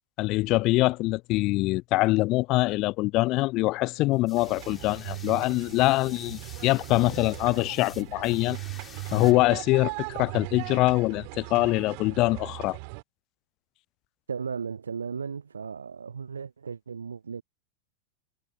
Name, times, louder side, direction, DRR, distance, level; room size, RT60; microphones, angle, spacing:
voice 1, 0.2-8.6 9.1-12.8, left 20 dB, 40° left, 0.4 m, -24 dB
sound 1, 4.1-9.3, left 7 dB, 20° left, 4.7 m, -49 dB
sound 2, 4.4-13.0, right 37 dB, 45° right, 4.2 m, -39 dB
voice 2, 14.3-17.4, right 6 dB, 70° right, 0.9 m, -35 dB
figure-of-eight pair, 90°, 0 cm